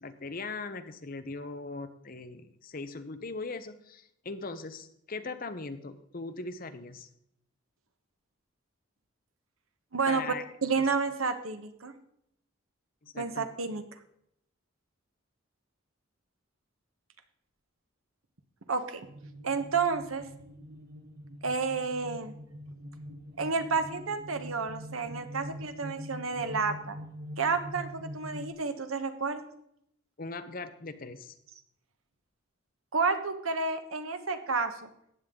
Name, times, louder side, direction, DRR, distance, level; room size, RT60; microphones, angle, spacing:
voice 1, 0.0-7.1 10.1-10.4 13.0-13.5 30.2-31.3, left 3 dB, 45° left, 10 dB, 0.9 m, -40 dB
voice 2, 9.9-10.2 10.6-11.9 13.1-13.8 18.7-19.1 19.4-20.2 21.4-22.4 23.4-27.0 27.4-29.4 32.9-34.9, right 4 dB, 90° right, 9 dB, 1.2 m, -30 dB
sound 1, 19.1-28.5, equal, 50° right, 1.1 m, -44 dB
14.5 x 9.1 x 3.8 m, 0.74 s
head